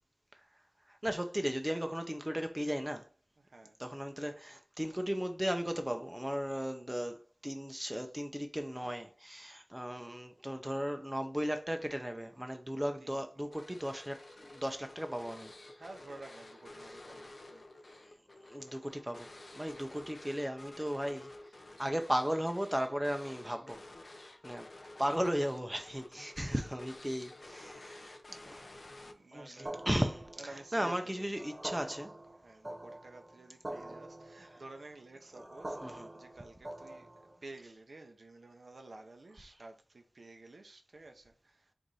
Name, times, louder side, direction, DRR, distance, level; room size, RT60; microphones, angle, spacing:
voice 1, 0.9-3.1 3.8-15.5 18.5-23.8 24.4-24.7 25.0-28.6 29.3-32.1 35.8-36.1, equal, 10° right, 0.5 m, -36 dB
voice 2, 3.4-3.8 13.0-13.2 14.3-14.4 15.7-17.6 27.9-28.2 28.9-29.8 30.4-31.3 32.4-37.1 37.4-41.7, right 2 dB, 90° right, 0.6 m, -52 dB
sound 1, 13.5-29.5, left 2 dB, 70° left, 0.7 m, -52 dB
sound 2, 29.6-37.4, right 1 dB, 35° right, 1.0 m, -46 dB
4.6 x 2.5 x 4.0 m
wide cardioid pair, 70°, 0 cm